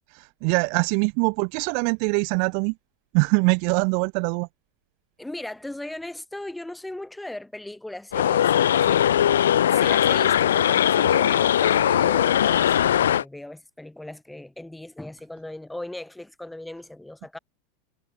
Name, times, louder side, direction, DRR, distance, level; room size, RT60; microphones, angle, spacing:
voice 1, 0.4-2.7 3.1-4.5, right 40 dB or more, 60° right, 0.4 m, -23 dB
voice 2, 5.2-9.1 9.5-17.4, left 1 dB, 5° left, 5.9 m, -38 dB
sound 1, 8.1-13.2, left 10 dB, 85° left, 0.5 m, -20 dB
hypercardioid pair, 100°, 0 cm